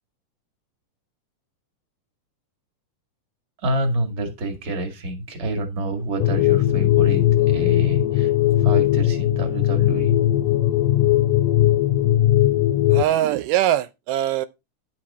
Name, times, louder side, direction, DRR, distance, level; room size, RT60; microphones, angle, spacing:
voice 1, 3.6-8.3 8.6-10.2, right 1 dB, 25° right, 1.8 m, -28 dB
sound 1, 6.2-13.0, left 13 dB, 80° left, 2.0 m, -18 dB
voice 2, 12.9-14.5, right 12 dB, 85° right, 2.2 m, -22 dB
10.5 x 6.0 x 4.2 m
omnidirectional pair, 3.7 m